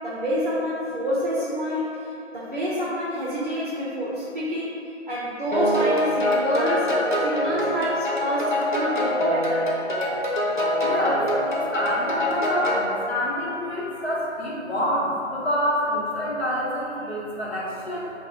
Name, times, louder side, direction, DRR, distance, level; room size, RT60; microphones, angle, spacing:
voice 1, 0.0-4.7 5.1-6.9 7.2-9.8, equal, 50° right, -7 dB, 0.5 m, -28 dB
sound 1, 5.5-12.9, left 1 dB, 45° left, 0.4 m, -24 dB
voice 2, 10.8-18.1, equal, 60° left, -5 dB, 0.8 m, -27 dB
2.4 x 2.1 x 3.9 m, 2.8 s
figure-of-eight pair, 160°, 35 cm